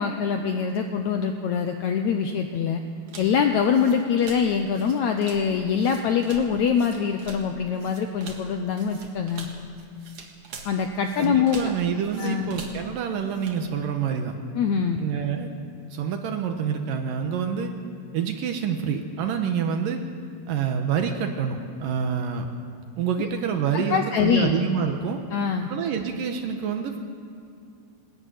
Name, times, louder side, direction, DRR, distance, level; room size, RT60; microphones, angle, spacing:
voice 1, 0.0-2.8 3.2-9.5 10.7-11.7 12.2-12.5 14.6-15.0 23.2-23.3 23.7-24.5 25.3-25.7, left 7 dB, 80° left, 5 dB, 1.6 m, -24 dB
sound 1, 3.1-13.6, right 4 dB, 45° right, 2.2 m, -44 dB
voice 2, 11.2-14.3 15.0-15.5 15.9-17.7 18.1-20.0 20.5-22.5 23.0-25.2 25.7-27.0, right 7 dB, 70° right, 5 dB, 2.6 m, -27 dB
20.5 x 14.0 x 9.3 m, 2.5 s
omnidirectional pair, 4.4 m